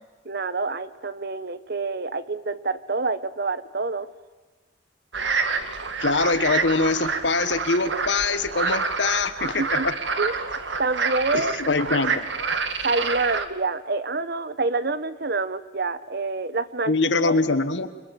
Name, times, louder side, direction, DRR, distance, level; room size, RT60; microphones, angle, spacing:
voice 1, 0.2-4.1 9.6-9.9 10.2-11.7 12.8-16.9 17.3-17.4, right 3 dB, 60° right, 14 dB, 1.2 m, -27 dB
sound 1, 5.1-13.5, right 4 dB, 80° right, 1.9 m, -28 dB
voice 2, 6.0-9.9 11.3-12.2 16.9-17.9, left 3 dB, 80° left, 12 dB, 1.6 m, -23 dB
29.5 x 24.5 x 7.6 m, 1.2 s
head